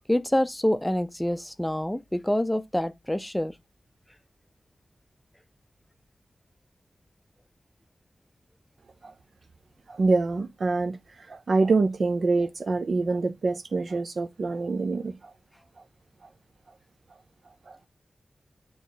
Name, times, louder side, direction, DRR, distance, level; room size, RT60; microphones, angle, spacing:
voice 1, 0.1-3.5, left 1 dB, 10° left, 0.5 m, -26 dB
voice 2, 9.9-15.3 15.8-15.9 17.7-17.8, right 3 dB, 65° right, 0.7 m, -26 dB
8.9 x 3.1 x 4.0 m
wide cardioid pair, 105°, 0 cm